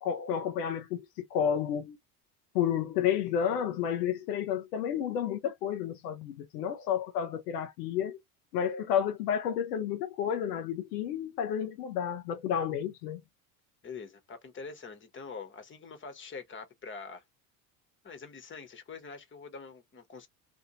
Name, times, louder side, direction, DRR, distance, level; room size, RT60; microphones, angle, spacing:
voice 1, 0.0-2.0 2.5-8.2 8.5-13.2, left 9 dB, 85° left, 0.7 m, -31 dB
voice 2, 13.8-17.2 18.0-20.3, left 5 dB, 25° left, 1.1 m, -44 dB
2.6 x 2.5 x 2.9 m
hypercardioid pair, 80°, 46 cm